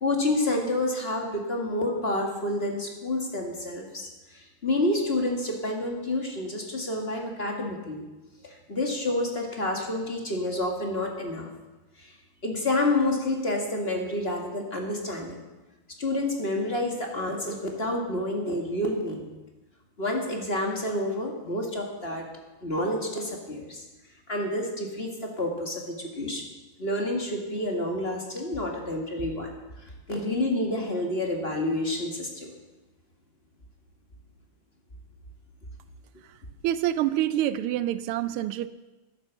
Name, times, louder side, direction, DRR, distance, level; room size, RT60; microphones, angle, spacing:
voice 1, 0.0-8.1 8.4-11.5 12.0-12.1 12.4-15.4 16.0-19.3 20.0-22.3 22.6-23.8 24.3-26.4 26.8-29.5 29.8-32.5, left 1 dB, 30° left, 1 dB, 1.9 m, -29 dB
voice 2, 36.6-38.7, right 12 dB, 80° right, 14 dB, 1.5 m, -26 dB
12.0 x 10.5 x 7.0 m, 1.1 s
omnidirectional pair, 2.4 m